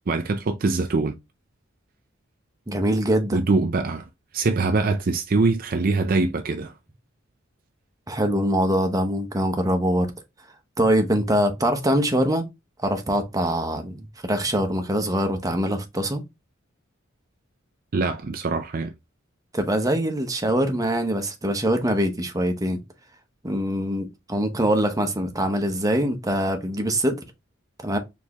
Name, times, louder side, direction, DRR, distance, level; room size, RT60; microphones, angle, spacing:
voice 1, 0.1-1.2 3.3-4.0 4.3-6.8 17.9-18.9, right 3 dB, 45° right, 0.5 m, -23 dB
voice 2, 2.7-3.4 8.1-10.1 10.8-12.4 12.8-16.2 19.5-22.8 23.4-27.2 27.8-28.0, right 1 dB, 15° right, 0.9 m, -23 dB
4.5 x 3.4 x 2.9 m
head